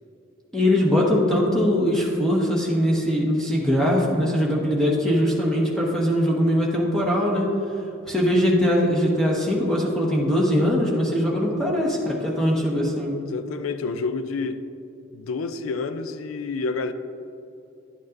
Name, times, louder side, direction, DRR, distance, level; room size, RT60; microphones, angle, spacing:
voice 1, 0.5-7.5 8.1-13.1, equal, 5° left, -4 dB, 1.3 m, -21 dB
voice 2, 13.3-14.6 15.1-16.9, left 4 dB, 90° left, 10 dB, 0.4 m, -29 dB
11.0 x 8.6 x 2.6 m, 2.8 s
head